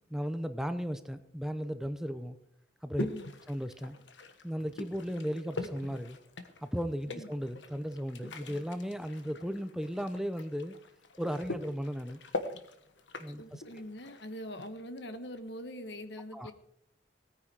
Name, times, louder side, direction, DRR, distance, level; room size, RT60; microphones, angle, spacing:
voice 1, 0.1-2.4 2.8-3.1 3.5-4.0 4.4-6.2 6.6-10.8 11.2-12.2 13.2-13.6 16.3-16.5, equal, 5° right, 10 dB, 0.6 m, -35 dB
sound 1, 3.0-14.7, left 2 dB, 85° left, 1.3 m, -43 dB
voice 2, 3.0-3.3 7.1-7.3 13.4-16.5, equal, 70° left, 10 dB, 1.3 m, -43 dB
17.5 x 9.7 x 4.8 m, 0.73 s
head